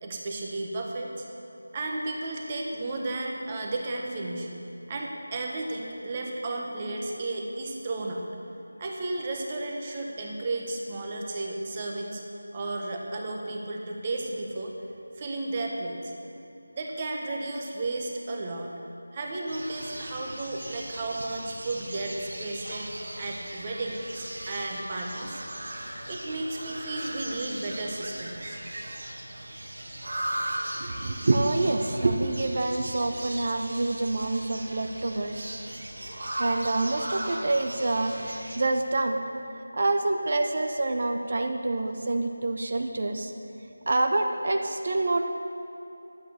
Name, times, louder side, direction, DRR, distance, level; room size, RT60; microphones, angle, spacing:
voice 1, 0.0-1.2 1.7-4.5 4.9-8.3 8.8-12.2 12.5-14.7 15.2-16.1 16.7-18.7 19.1-22.9 23.2-25.4 26.1-28.6, right 2 dB, 20° right, 0 dB, 1.0 m, -33 dB
sound 1, 19.5-38.6, right 1 dB, 70° right, 1.8 m, -38 dB
voice 2, 30.8-35.4 36.3-39.2 39.7-43.3 43.9-45.3, right 2 dB, 45° right, 5 dB, 0.7 m, -27 dB
11.0 x 8.5 x 7.0 m, 2.8 s
figure-of-eight pair, 170°, 0 cm